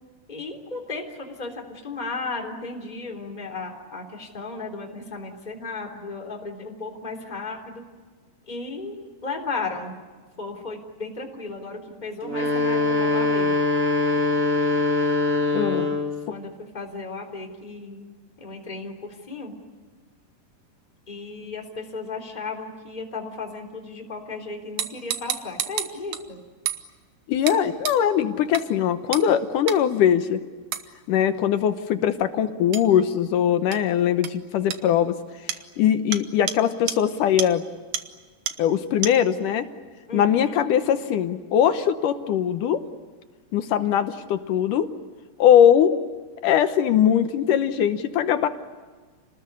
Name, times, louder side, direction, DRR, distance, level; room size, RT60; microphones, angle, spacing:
voice 1, 0.3-7.8 8.5-9.9 10.4-13.5 15.6-15.9 16.3-18.0 18.4-19.5 21.1-26.4 40.1-40.6, left 3 dB, 10° left, 2 dB, 3.0 m, -35 dB
sound 1, 12.2-16.2, left 3 dB, 25° right, 2.5 m, -22 dB
voice 2, 15.5-15.9 27.3-30.4 31.1-35.2 35.8-37.6 38.6-39.6 40.1-42.8 43.5-44.9 45.4-46.0 46.4-48.5, left 9 dB, 70° left, 9 dB, 2.1 m, -21 dB
sound 2, 24.8-26.2 26.7-26.8 27.5-27.6 27.8-28.0 28.5-28.6 29.1-29.3 29.7-29.8 30.7-30.9 32.7-32.9 33.7-33.8 34.2-34.3 34.7-34.8 35.5-35.6 36.1-36.2 36.5-36.6 36.9-37.0 37.4-37.5 37.9-38.0 38.5-38.6 39.0-39.1, right 10 dB, 65° right, 2.0 m, -29 dB
29.0 x 20.0 x 9.7 m, 1.4 s
omnidirectional pair, 4.8 m